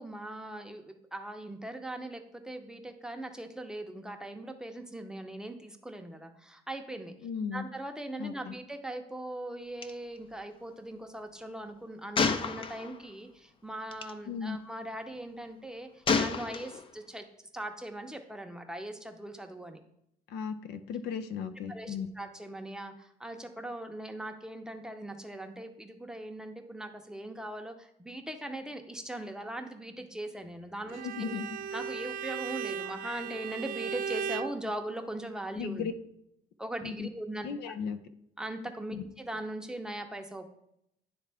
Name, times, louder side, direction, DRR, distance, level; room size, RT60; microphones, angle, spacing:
voice 1, 0.0-7.1 7.5-17.3 17.5-19.8 21.7-31.4 31.7-35.9 36.6-37.7 38.4-40.5, right 1 dB, 5° right, 4 dB, 0.7 m, -40 dB
voice 2, 7.2-7.6 8.2-8.5 14.3-14.6 20.3-22.1 31.0-31.6 35.6-35.9 36.8-37.1 37.4-38.0 38.9-39.0, left 6 dB, 80° left, 10 dB, 0.6 m, -36 dB
Gunshot gunfire, 9.8-9.9 10.2-10.3 12.1-13.1 13.9-14.1 16.1-17.0, left 5 dB, 30° left, 0.5 m, -30 dB
Bowed string instrument, 30.9-34.6, right 6 dB, 55° right, 0.4 m, -36 dB
10.5 x 3.6 x 3.4 m, 0.77 s
cardioid pair, 110°, 17 cm